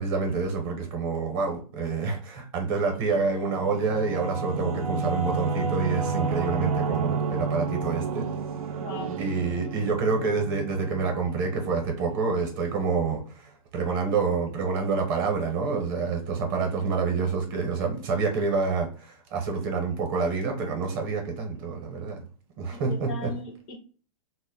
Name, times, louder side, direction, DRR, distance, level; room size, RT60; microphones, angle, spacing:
voice 1, 0.0-8.3 9.2-22.2 22.6-23.3, right 4 dB, 40° right, 0.7 m, -27 dB
Singing / Musical instrument, 3.1-12.3, right 4 dB, 85° right, 0.4 m, -31 dB
voice 2, 8.8-9.2 22.7-23.8, left 3 dB, 30° left, 0.4 m, -38 dB
2.1 x 2.1 x 3.6 m
hypercardioid pair, 145°, 18 cm